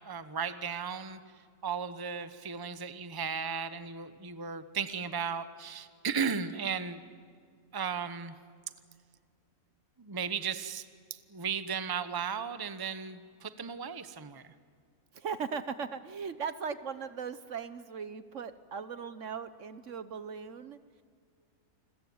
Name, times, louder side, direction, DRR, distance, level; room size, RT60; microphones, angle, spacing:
voice 1, 0.1-1.2 1.6-7.0 7.7-8.3 10.0-10.8 11.1-14.4, right 6 dB, 20° right, 11 dB, 0.9 m, -35 dB
voice 2, 15.1-21.0, right 6 dB, 60° right, 12 dB, 1.3 m, -38 dB
29.5 x 21.5 x 9.4 m, 2.1 s
omnidirectional pair, 1.5 m